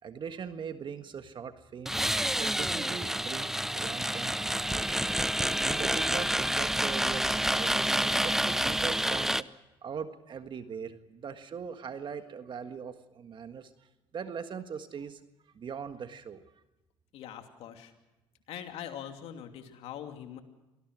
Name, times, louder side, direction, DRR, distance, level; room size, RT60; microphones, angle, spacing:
voice 1, 0.0-2.0 2.4-5.1 5.6-9.5 9.8-15.2 15.5-16.4, right 7 dB, 50° right, 8 dB, 1.6 m, -41 dB
sound 1, 1.9-9.4, right 1 dB, 5° right, 0.7 m, -28 dB
voice 2, 17.1-17.9 18.5-20.4, left 10 dB, 75° left, 5 dB, 2.8 m, -42 dB
26.0 x 19.0 x 6.2 m, 1.0 s
supercardioid pair, 75°, 10 cm